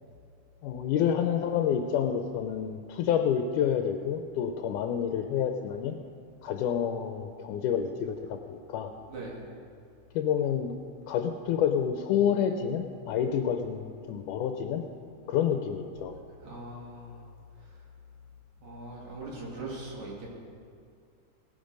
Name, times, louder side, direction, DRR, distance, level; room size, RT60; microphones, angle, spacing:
voice 1, 0.6-5.9 6.4-8.9 10.2-10.7 11.1-14.8 15.3-16.1, left 8 dB, 80° left, 6 dB, 2.1 m, -28 dB
voice 2, 16.4-17.1 18.6-20.3, right 2 dB, 65° right, -3 dB, 3.4 m, -40 dB
17.5 x 8.8 x 5.3 m, 2.3 s
omnidirectional pair, 3.6 m